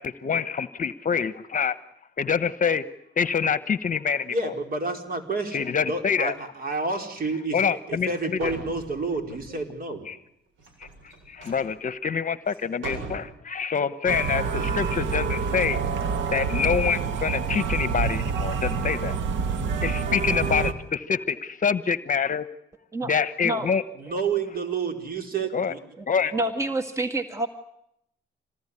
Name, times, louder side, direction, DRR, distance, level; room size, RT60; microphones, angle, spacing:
voice 1, 0.0-1.8 2.2-2.8 3.2-4.5 5.5-6.3 7.5-8.5 10.1-10.2 11.3-15.8 16.3-19.2 19.8-22.5 23.0-23.8 25.5-25.7 26.1-26.3, left 6 dB, 40° left, 14 dB, 1.1 m, -26 dB
voice 2, 4.3-10.1 24.0-25.8 26.2-26.3, right 3 dB, 50° right, 5 dB, 4.6 m, -30 dB
sound 1, 8.1-8.2 8.4-9.6 10.6-11.7 12.5-12.6 12.8-13.2, right 3 dB, 90° right, 7.8 m, -39 dB
sound 2, 14.1-20.7, right 5 dB, 70° right, 1.9 m, -27 dB
voice 3, 26.3-27.5, right 2 dB, 15° right, 5 dB, 2.0 m, -27 dB
27.0 x 19.5 x 9.9 m, 0.78 s
cardioid pair, 90°, 20 cm